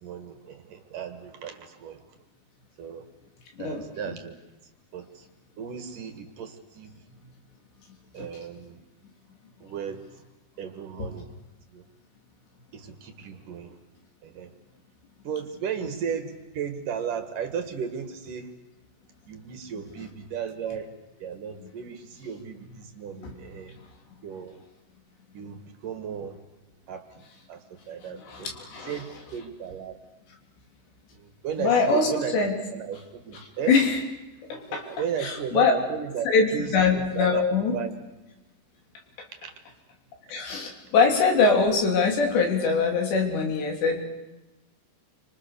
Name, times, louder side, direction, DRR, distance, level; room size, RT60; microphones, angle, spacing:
voice 1, 0.0-2.1 2.8-3.1 3.6-4.3 4.9-5.3 5.6-7.0 8.1-8.8 9.6-10.0 10.6-11.3 11.7-11.9 12.7-13.8 14.2-14.5 15.2-18.5 19.3-20.9 21.2-23.7 24.2-24.6 25.3-26.4 26.9-27.2 27.5-28.5 28.8-30.0 31.1-32.3 32.7-33.8 34.7-37.9 39.3-39.5, right 7 dB, 60° right, 7 dB, 2.8 m, -35 dB
voice 2, 3.6-4.1 8.2-8.3 23.2-23.3 28.3-28.9 31.6-32.6 33.7-34.0 34.5-34.8 35.2-35.7 36.3-37.8 40.3-44.0, left 4 dB, 80° left, 3 dB, 5.5 m, -23 dB
30.0 x 25.5 x 6.8 m, 1.0 s
omnidirectional pair, 4.9 m